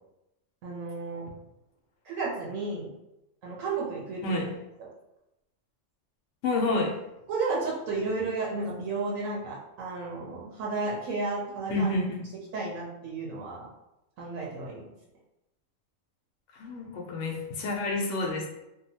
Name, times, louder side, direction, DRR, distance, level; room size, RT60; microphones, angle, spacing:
voice 1, 0.6-1.2 2.0-2.9 3.4-4.4 4.8-4.9 7.3-11.9 12.5-13.7 14.2-14.9, right 3 dB, 75° right, -3 dB, 1.0 m, -32 dB
voice 2, 6.4-6.9 11.7-12.2 16.5-18.5, left 2 dB, 70° left, 1 dB, 0.9 m, -29 dB
2.6 x 2.2 x 2.7 m, 0.90 s
omnidirectional pair, 1.4 m